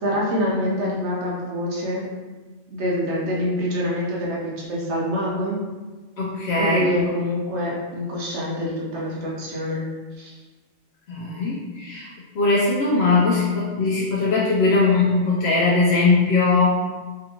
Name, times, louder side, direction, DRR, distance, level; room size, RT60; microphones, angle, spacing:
voice 1, 0.0-2.0 2.7-5.6 6.6-9.8 10.2-10.3, equal, 70° right, -4 dB, 1.1 m, -25 dB
voice 2, 6.2-6.9 11.1-12.1 12.3-16.8, left 3 dB, 70° left, -6 dB, 0.8 m, -20 dB
3.5 x 2.5 x 2.9 m, 1.3 s
omnidirectional pair, 1.2 m